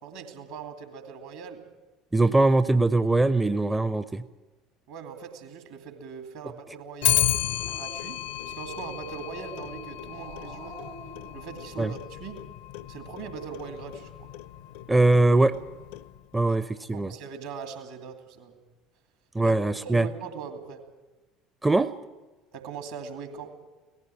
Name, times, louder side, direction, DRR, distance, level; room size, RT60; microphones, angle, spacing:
voice 1, 0.0-1.6 4.9-7.3 7.6-10.8 11.3-12.5 12.9-14.3 16.9-18.6 19.4-19.6 19.8-20.9 22.5-23.6, right 6 dB, 65° right, 6 dB, 2.4 m, -40 dB
voice 2, 2.1-4.2 11.8-11.9 14.9-15.6 16.3-17.1 19.3-20.1 21.6-21.9, right 2 dB, 10° right, 14 dB, 0.5 m, -21 dB
Clock, 7.0-16.4, left 14 dB, 65° left, 0.6 m, -33 dB
Growling, 7.2-12.4, right 3 dB, 80° right, 1.7 m, -48 dB
18.0 x 15.0 x 9.6 m, 1.2 s
figure-of-eight pair, 65°, 0 cm